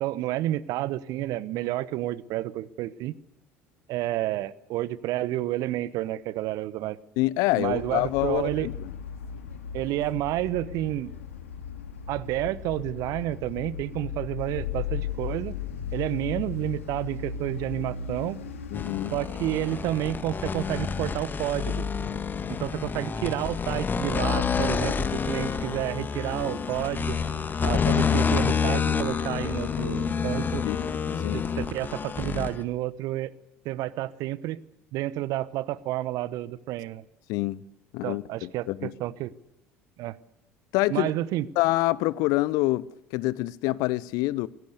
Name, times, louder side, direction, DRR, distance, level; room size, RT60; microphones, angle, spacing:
voice 1, 0.0-3.1 3.9-7.0 7.6-8.7 9.7-11.1 12.1-15.5 15.9-18.4 19.1-21.9 22.5-27.2 27.6-30.6 31.3-33.3 33.6-34.6 34.9-37.0 38.0-39.3 40.0-40.2 40.9-41.5, right 15 dB, 55° right, 1.0 m, -30 dB
voice 2, 7.2-8.9 18.7-19.1 30.6-30.9 31.2-31.5 37.3-37.6 37.9-38.9 40.7-41.1 41.6-44.5, left 19 dB, 60° left, 0.8 m, -26 dB
sound 1, 7.6-20.3, left 8 dB, 75° left, 2.4 m, -37 dB
sound 2, 18.7-32.6, left 6 dB, 25° left, 1.8 m, -28 dB
24.5 x 17.0 x 6.7 m
figure-of-eight pair, 65°, 7 cm